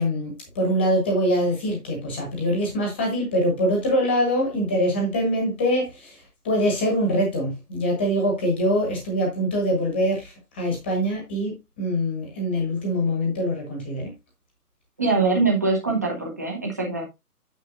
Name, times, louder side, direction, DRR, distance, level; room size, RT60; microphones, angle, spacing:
voice 1, 0.0-14.1, equal, 5° left, 1.4 m, -24 dB
voice 2, 15.0-17.0, right 3 dB, 10° right, 1.1 m, -23 dB
9.2 x 8.5 x 2.5 m
hypercardioid pair, 175°, 47 cm